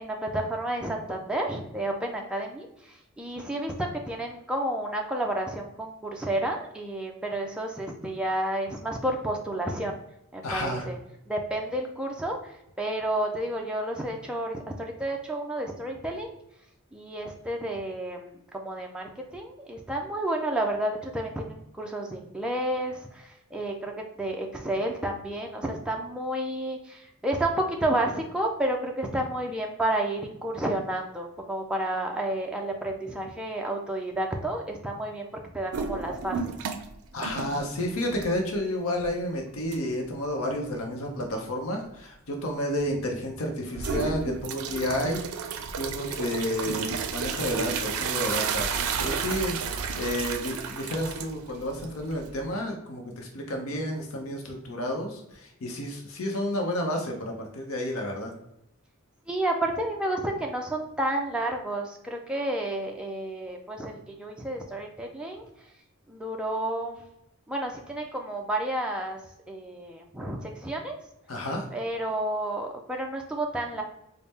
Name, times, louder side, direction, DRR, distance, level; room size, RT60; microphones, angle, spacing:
voice 1, 0.0-10.0 10.3-11.0 11.3-16.3 16.9-23.9 24.2-35.3 35.5-36.5 59.3-65.4 66.1-67.0 67.5-69.2 69.5-71.0 71.7-73.8, right 1 dB, 5° right, 0 dB, 0.3 m, -31 dB
voice 2, 10.4-10.9 37.1-45.2 45.8-48.7 49.0-49.6 50.0-58.3 71.3-71.7, left 1 dB, 75° left, 2 dB, 0.6 m, -31 dB
sound 1, 35.7-36.9 37.2-38.6 39.0-39.1 39.7-39.8 43.7-52.5, right 6 dB, 85° right, 0.4 m, -32 dB
4.0 x 2.0 x 3.4 m, 0.82 s
head